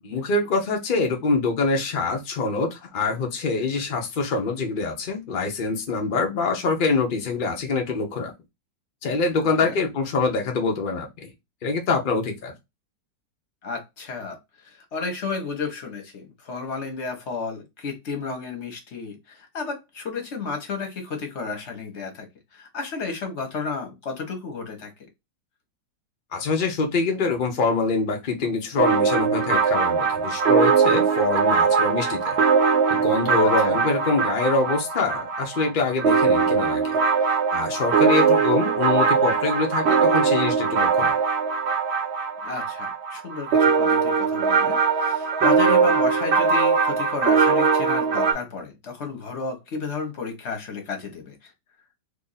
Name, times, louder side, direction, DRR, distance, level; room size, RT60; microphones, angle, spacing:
voice 1, 0.0-8.3 9.0-11.3 11.6-12.5 26.3-32.4 32.9-37.0 37.5-41.2, left 3 dB, 70° left, 0.5 m, -25 dB
voice 2, 13.6-14.4 14.6-24.9 33.6-33.8 42.4-51.5, left 4 dB, 45° left, 1.1 m, -32 dB
sound 1, 28.8-48.3, right 5 dB, 90° right, 0.5 m, -21 dB
2.9 x 2.6 x 3.9 m
omnidirectional pair, 1.9 m